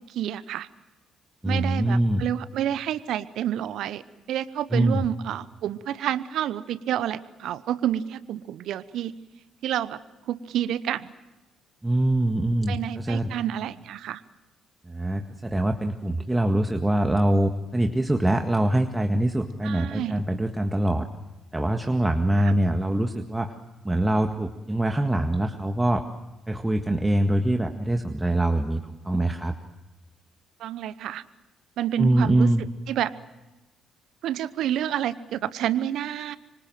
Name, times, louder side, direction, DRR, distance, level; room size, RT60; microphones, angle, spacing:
voice 1, 0.1-0.7 1.4-4.0 4.3-9.1 9.6-10.0 10.3-11.1 12.7-14.2 19.6-20.2 30.6-31.2 31.8-32.5 32.9-33.1 34.2-36.4, right 11 dB, 65° right, 17 dB, 0.9 m, -29 dB
voice 2, 1.4-2.2 4.7-5.0 11.8-13.3 14.9-21.1 21.5-23.5 23.8-26.0 26.5-29.6 32.0-32.7, right 1 dB, 15° right, 5 dB, 1.8 m, -24 dB
26.5 x 25.0 x 7.7 m, 1.1 s
figure-of-eight pair, 45°, 0 cm